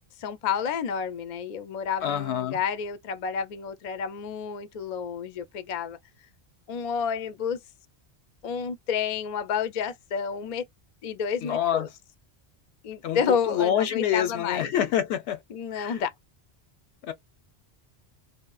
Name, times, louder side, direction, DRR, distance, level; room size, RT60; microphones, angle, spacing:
voice 1, 0.2-6.0 6.7-7.6 8.4-10.6 11.0-11.9 12.8-14.7 15.5-16.1, left 7 dB, 55° left, 0.5 m, -30 dB
voice 2, 2.0-2.6 11.4-11.9 13.0-15.4 15.7-16.0 17.0-17.1, left 10 dB, 90° left, 0.9 m, -27 dB
2.7 x 2.0 x 2.3 m
omnidirectional pair, 1.1 m